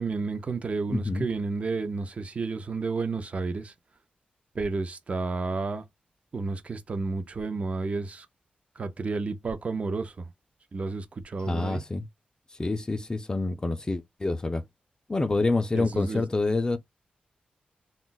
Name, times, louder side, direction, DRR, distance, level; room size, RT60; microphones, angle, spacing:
voice 1, 0.0-3.7 4.5-5.8 6.3-8.3 8.8-10.3 10.7-11.8 15.7-16.2, right 3 dB, 45° right, 0.5 m, -31 dB
voice 2, 0.9-1.3 11.4-12.1 12.6-14.6 15.1-16.8, left 2 dB, 25° left, 0.3 m, -27 dB
2.3 x 2.0 x 3.8 m
wide cardioid pair, 95°, 3 cm